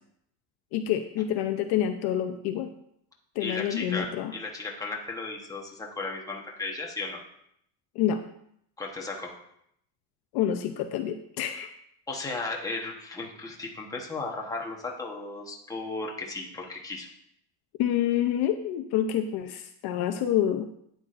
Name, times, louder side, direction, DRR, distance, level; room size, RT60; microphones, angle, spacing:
voice 1, 0.7-2.7 3.4-4.3 8.0-8.2 10.3-11.7 17.8-20.7, left 10 dB, 50° left, 6 dB, 0.6 m, -27 dB
voice 2, 3.4-7.2 8.8-9.3 12.1-17.1, left 3 dB, 5° left, -1 dB, 1.0 m, -35 dB
12.5 x 9.4 x 2.5 m, 0.73 s
cardioid pair, 170°, 50 cm